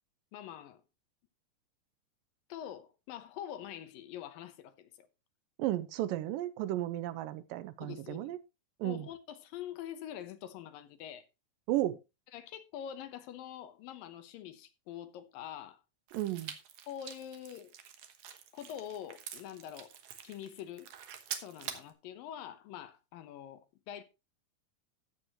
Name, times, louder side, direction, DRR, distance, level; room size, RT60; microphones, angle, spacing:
voice 1, 0.3-0.8 2.5-5.1 7.8-8.4 8.8-11.3 12.3-15.8 16.9-17.7 18.5-19.9 20.2-20.9 21.4-24.0, left 10 dB, 80° left, 2.7 m, -45 dB
voice 2, 5.6-8.4 8.8-9.1 11.7-12.0 16.1-16.5, right 14 dB, 80° right, 2.2 m, -34 dB
sound 1, 16.1-21.9, right 9 dB, 65° right, 2.2 m, -46 dB
13.5 x 8.2 x 3.0 m
omnidirectional pair, 4.1 m